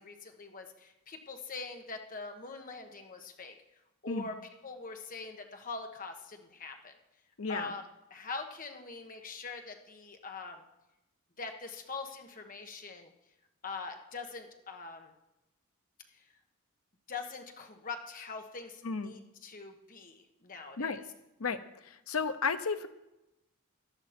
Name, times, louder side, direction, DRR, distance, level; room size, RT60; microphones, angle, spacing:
voice 1, 0.0-3.5 4.0-4.3 4.6-6.9 7.5-7.8 8.1-10.6 11.4-13.1 13.6-15.1 16.1-16.2 17.1-21.0, left 4 dB, 40° left, 4 dB, 1.3 m, -43 dB
voice 2, 7.4-7.7 18.8-19.2 20.8-21.0 21.4-22.9, left 5 dB, 80° left, 10 dB, 0.8 m, -33 dB
14.5 x 11.0 x 4.4 m, 0.94 s
head